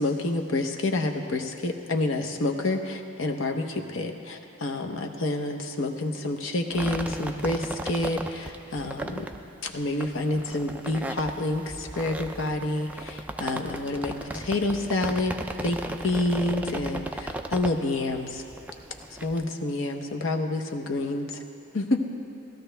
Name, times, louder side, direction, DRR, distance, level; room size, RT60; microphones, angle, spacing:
voice 1, 0.0-9.3 9.6-15.4 15.6-18.4 19.2-21.3 21.7-22.0, left 2 dB, 65° left, 3 dB, 0.9 m, -28 dB
sound 1, 6.7-19.4, right 1 dB, 5° right, 0.3 m, -36 dB
17.5 x 13.0 x 3.4 m, 2.9 s
head